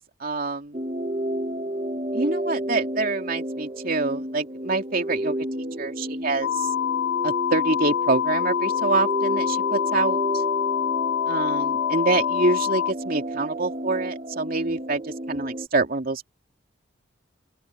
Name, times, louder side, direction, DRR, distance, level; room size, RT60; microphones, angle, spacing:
voice 1, 0.2-0.8 2.1-5.5 5.8-6.7 7.2-10.2 11.3-16.3, right 3 dB, 50° right, 2.9 m, -26 dB
sound 1, 0.7-15.7, right 1 dB, 30° right, 1.3 m, -31 dB
sound 2, 6.4-12.9, left 10 dB, 90° left, 2.7 m, -25 dB
open air
head